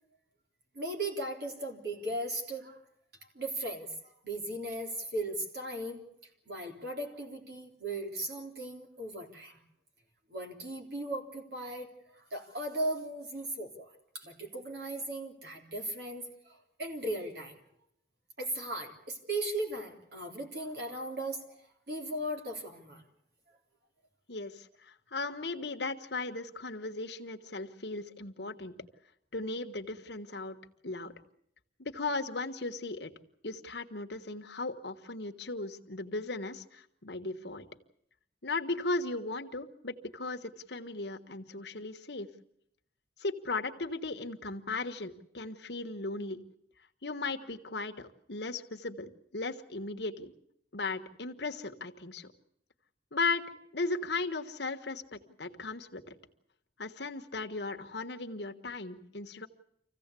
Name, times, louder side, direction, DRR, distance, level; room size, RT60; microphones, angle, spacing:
voice 1, 0.7-2.8 3.3-6.0 6.5-9.6 10.3-17.5 18.4-23.0, right 1 dB, 60° right, 2 dB, 3.7 m, -37 dB
voice 2, 24.3-28.7 29.3-30.6 30.8-31.1 31.8-33.1 33.4-37.6 38.4-42.3 43.2-46.4 47.0-50.3 50.7-52.3 53.1-53.4 53.7-56.0 56.8-59.5, left 3 dB, 65° left, 5 dB, 1.4 m, -37 dB
25.5 x 16.0 x 8.3 m, 0.72 s
head